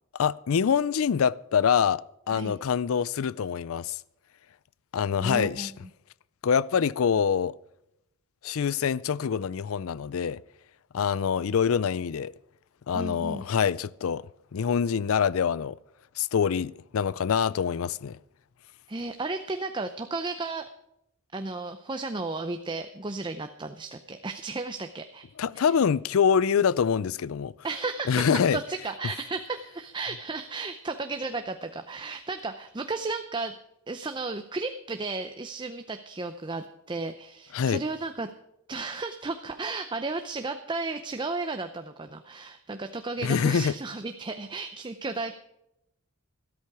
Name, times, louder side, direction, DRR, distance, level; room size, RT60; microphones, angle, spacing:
voice 1, 0.1-4.0 4.9-5.7 6.4-7.5 8.4-10.4 10.9-12.3 12.9-14.3 14.5-15.7 16.2-18.2 25.4-27.5 28.1-28.6 37.5-37.8 43.2-43.7, left 7 dB, 70° left, 0.4 m, -25 dB
voice 2, 5.2-5.7 12.9-13.4 18.9-20.7 21.3-25.3 25.5-25.7 27.6-33.5 33.9-38.3 38.7-45.3, right 3 dB, 20° right, 0.6 m, -34 dB
13.5 x 13.0 x 4.8 m
head